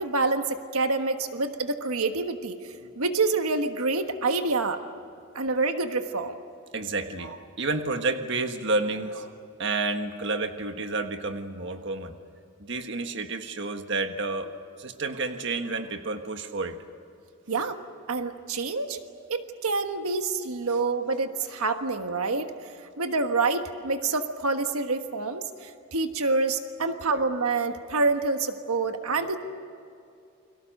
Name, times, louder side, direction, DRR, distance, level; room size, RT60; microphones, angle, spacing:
voice 1, 0.0-4.8 5.3-6.3 17.5-17.8 18.1-19.0 19.3-29.4, right 3 dB, 80° right, 7 dB, 1.4 m, -27 dB
voice 2, 6.7-9.3 9.6-12.1 12.6-16.8 17.5-17.7 26.8-26.9, right 3 dB, 55° right, 6 dB, 1.5 m, -30 dB
29.5 x 23.0 x 6.6 m, 2.5 s
head